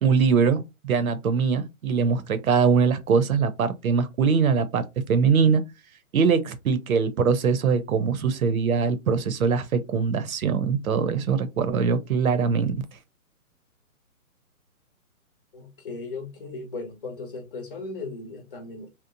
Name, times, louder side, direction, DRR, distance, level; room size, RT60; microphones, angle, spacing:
voice 1, 0.0-5.6 6.1-12.7, right 5 dB, 70° right, 0.6 m, -22 dB
voice 2, 15.5-18.9, left 3 dB, 40° left, 0.7 m, -37 dB
2.9 x 2.0 x 2.5 m
hypercardioid pair, 150°, 43 cm